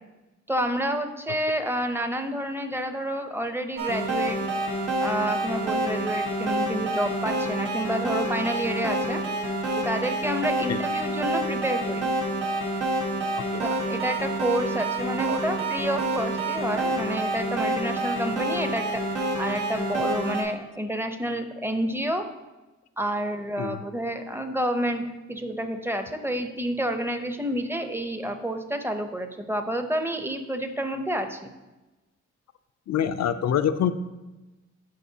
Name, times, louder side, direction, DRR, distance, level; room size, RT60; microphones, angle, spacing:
voice 1, 0.5-4.4 5.0-9.2 9.7-12.1 13.6-22.3 23.0-31.4, right 1 dB, 10° right, 7 dB, 0.6 m, -29 dB
sound 1, 3.8-20.4, right 1 dB, 80° right, 1.3 m, -28 dB
voice 2, 32.9-33.9, left 9 dB, 60° left, 13 dB, 0.4 m, -25 dB
11.5 x 4.4 x 2.7 m, 1.1 s
cardioid pair, 85°, 30 cm